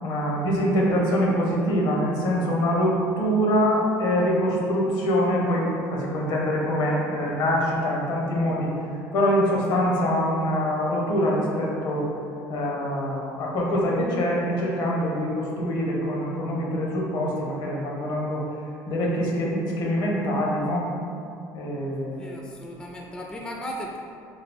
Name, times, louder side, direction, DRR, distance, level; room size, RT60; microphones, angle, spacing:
voice 1, 0.0-8.7 9.1-12.1 12.5-18.4 18.9-20.9 21.5-22.3, equal, 65° left, -3 dB, 0.8 m, -24 dB
voice 2, 22.2-24.0, equal, 10° left, -1 dB, 0.3 m, -36 dB
3.1 x 2.3 x 3.3 m, 2.5 s
supercardioid pair, 75°, 8 cm